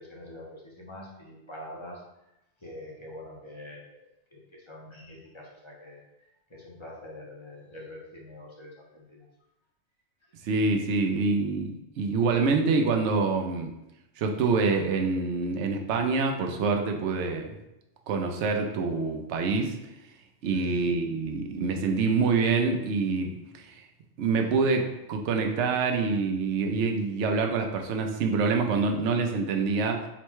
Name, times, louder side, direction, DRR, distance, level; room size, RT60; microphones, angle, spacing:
voice 1, 0.0-2.0 2.6-4.0 4.3-6.0 6.5-9.3 20.5-20.8, left 1 dB, 30° left, -3 dB, 0.7 m, -45 dB
voice 2, 10.4-13.7 14.2-17.6 18.1-19.8 20.4-23.8 24.2-30.0, right 4 dB, 80° right, 3 dB, 0.9 m, -26 dB
3.9 x 2.2 x 4.5 m, 0.89 s
omnidirectional pair, 1.2 m